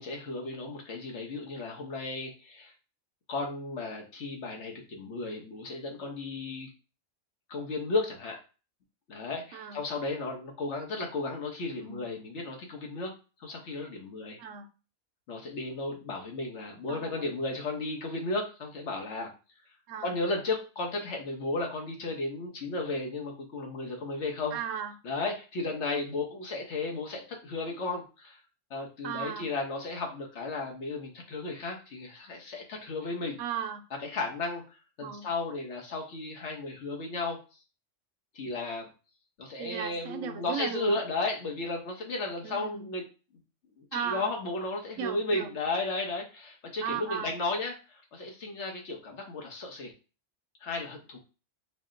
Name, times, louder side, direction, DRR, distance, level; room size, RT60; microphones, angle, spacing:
voice 1, 0.0-2.7 3.3-6.7 7.5-8.4 9.1-13.1 13.4-14.4 15.3-19.3 20.0-24.6 25.0-28.4 28.7-33.4 34.0-34.6 35.0-37.4 38.3-38.9 39.4-43.0 43.8-49.9 50.6-51.2, left 3 dB, 65° left, 1 dB, 1.2 m, -34 dB
voice 2, 16.9-17.2 19.9-20.1 24.5-24.9 29.0-29.5 33.4-33.8 35.0-35.3 39.6-41.0 42.4-42.9 43.9-44.3 45.0-45.5 46.8-47.3, right 8 dB, 90° right, 8 dB, 1.0 m, -36 dB
4.1 x 2.1 x 3.7 m, 0.33 s
omnidirectional pair, 1.3 m